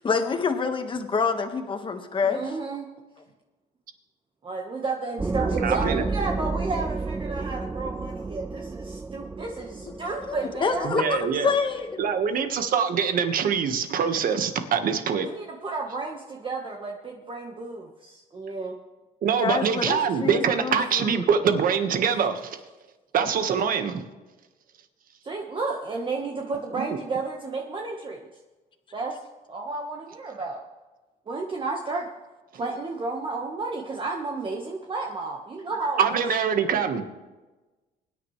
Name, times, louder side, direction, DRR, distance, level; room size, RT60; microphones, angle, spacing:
voice 1, 0.0-2.4 10.2-12.1 19.4-21.2, left 5 dB, 30° left, 6 dB, 1.6 m, -27 dB
voice 2, 2.2-2.9 4.4-10.9 15.2-18.8 25.2-28.3 28.9-29.2 29.5-30.6 31.3-32.1 32.5-36.0, right 3 dB, 30° right, 0 dB, 1.4 m, -32 dB
sound 1, 5.2-12.6, right 3 dB, 10° right, 0.3 m, -32 dB
voice 3, 5.6-6.0 10.8-11.5 12.0-15.3 19.2-22.6 23.1-24.0 26.8-26.9 36.0-37.0, right 7 dB, 55° right, 7 dB, 1.6 m, -24 dB
23.0 x 10.0 x 3.3 m, 1.2 s
cardioid pair, 110°, 17 cm